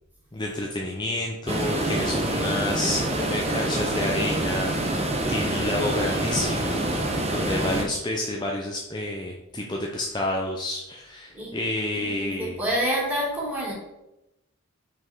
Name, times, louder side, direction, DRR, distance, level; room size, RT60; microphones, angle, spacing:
voice 1, 0.3-12.6, left 1 dB, 20° left, -1 dB, 0.7 m, -30 dB
sound 1, 1.5-7.8, right 1 dB, 30° right, 1.1 m, -26 dB
voice 2, 12.0-13.7, equal, 10° right, -6 dB, 2.6 m, -28 dB
6.2 x 5.6 x 4.6 m, 0.94 s
head